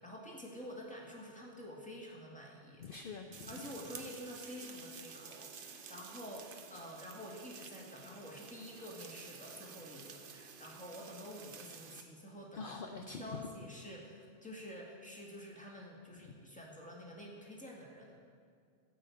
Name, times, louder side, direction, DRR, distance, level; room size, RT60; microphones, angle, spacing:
voice 1, 0.0-2.9 3.5-18.2, equal, 5° left, -2 dB, 1.9 m, -49 dB
voice 2, 2.8-3.7 12.5-13.4, left 5 dB, 55° left, 4 dB, 0.8 m, -45 dB
sound 1, 3.3-12.0, right 6 dB, 55° right, 0.9 m, -51 dB
13.5 x 5.5 x 8.4 m, 2.2 s
omnidirectional pair, 1.2 m